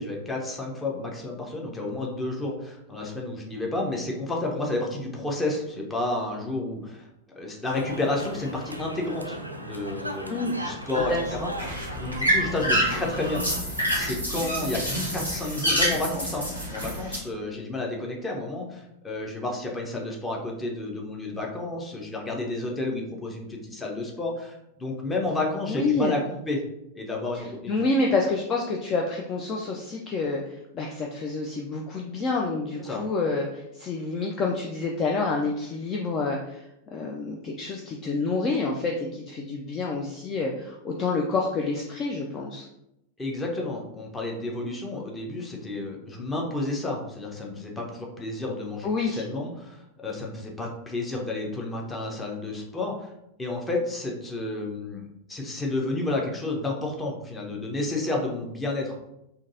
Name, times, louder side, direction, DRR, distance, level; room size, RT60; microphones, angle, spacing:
voice 1, 0.0-7.1 7.3-11.5 12.0-13.4 13.9-14.8 15.1-26.2 26.5-26.6 27.0-27.8 32.8-33.0 43.2-53.1 53.4-59.0, left 2 dB, 15° left, 0 dB, 0.8 m, -31 dB
sound 1, 7.6-13.6, right 1 dB, 85° right, 0.3 m, -37 dB
sound 2, 11.0-17.2, equal, 85° left, 1.2 m, -27 dB
voice 2, 11.0-11.3 25.7-26.2 27.3-42.7 48.8-49.2, left 3 dB, 30° left, 0 dB, 0.4 m, -28 dB
3.7 x 2.7 x 2.7 m, 0.83 s
figure-of-eight pair, 90°, 0 cm